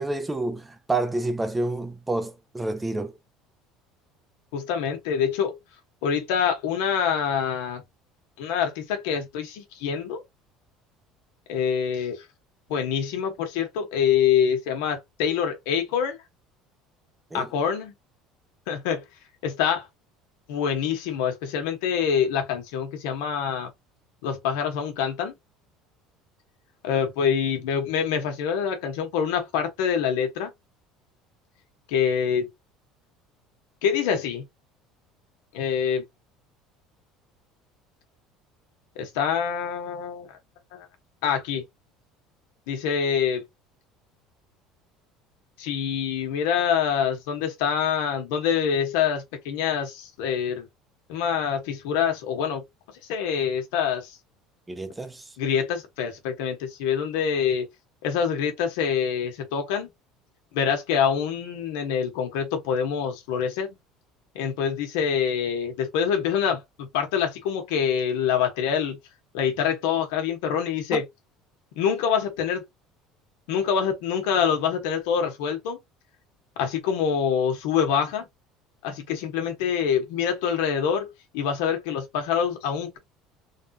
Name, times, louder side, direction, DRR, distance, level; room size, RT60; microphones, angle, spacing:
voice 1, 0.0-3.1 17.3-17.5 54.7-55.3 70.9-71.0, right 2 dB, 10° right, 0.6 m, -29 dB
voice 2, 4.5-5.6 6.0-7.8 8.4-10.2 11.5-12.2 12.7-16.2 17.3-17.9 18.7-19.0 19.4-19.9 20.5-23.7 24.2-25.3 26.8-30.5 31.9-32.5 33.8-34.4 35.5-36.0 39.0-40.4 40.7-40.9 41.2-41.6 42.7-43.4 45.6-50.7 51.1-52.6 53.1-54.2 55.4-57.7 58.0-59.9 60.5-63.7 64.3-69.0 69.3-71.0 71.8-72.6 73.5-75.8 76.6-78.3 78.8-83.0, left 7 dB, 90° left, 1.2 m, -25 dB
3.6 x 2.4 x 2.7 m
cardioid pair, 135°, 0 cm